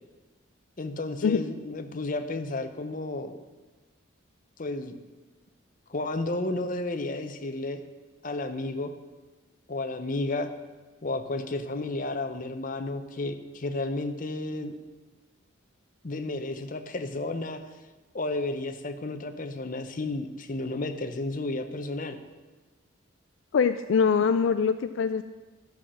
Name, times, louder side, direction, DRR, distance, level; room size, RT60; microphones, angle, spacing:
voice 1, 0.8-3.4 4.6-4.9 5.9-7.8 8.2-8.9 9.7-10.5 11.0-14.7 16.0-17.6 18.1-22.2, left 2 dB, 40° left, 8 dB, 0.7 m, -32 dB
voice 2, 23.5-25.2, left 6 dB, 70° left, 10 dB, 0.4 m, -23 dB
12.5 x 5.8 x 6.3 m, 1.2 s
head